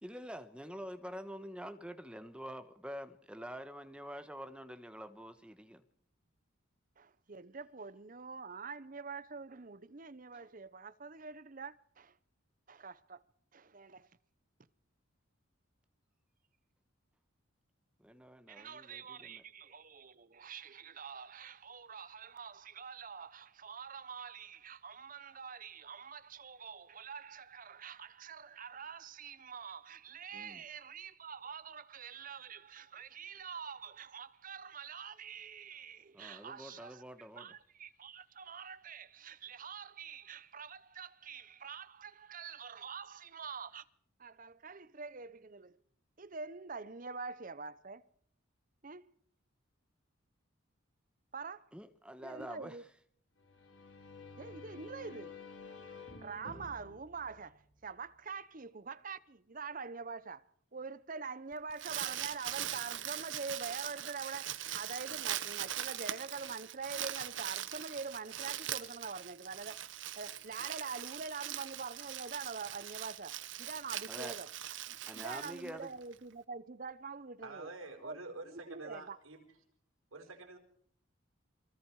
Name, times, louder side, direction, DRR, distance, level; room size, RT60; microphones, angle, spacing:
voice 1, 0.0-5.8 18.0-19.4 30.3-30.6 36.1-37.5 51.7-52.8 74.1-74.4 75.1-76.0, equal, 5° right, 1.3 m, -46 dB
voice 2, 7.0-12.2 12.7-13.2 13.5-14.2 18.5-43.9 44.2-45.8 46.2-48.1 48.8-49.2 51.3-51.7 52.2-52.9 54.4-55.4 56.2-60.5 60.7-69.8 70.2-74.5 74.9-77.7 78.0-78.2 78.5-79.2, right 5 dB, 40° right, 0.8 m, -45 dB
sound 1, 53.4-58.1, left 3 dB, 65° left, 4.1 m, -51 dB
Crumpling crinkling, 61.5-76.1, right 11 dB, 65° right, 1.1 m, -41 dB
voice 3, 77.4-79.4 80.1-80.6, right 3 dB, 80° right, 4.7 m, -47 dB
29.0 x 23.0 x 4.8 m
head